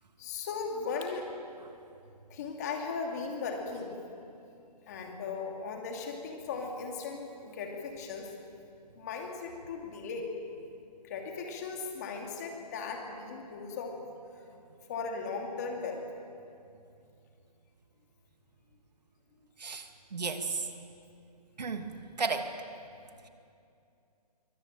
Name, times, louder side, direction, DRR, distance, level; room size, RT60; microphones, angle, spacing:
voice 1, 0.2-1.3 2.3-3.9 4.9-8.3 9.0-10.3 11.0-14.0 14.3-14.5 14.9-16.0, left 4 dB, 25° left, 2 dB, 2.8 m, -37 dB
voice 2, 19.6-20.7 21.6-21.9 22.2-22.5, right 4 dB, 75° right, 6 dB, 2.7 m, -33 dB
24.0 x 18.5 x 9.1 m, 2.6 s
hypercardioid pair, 170°, 21 cm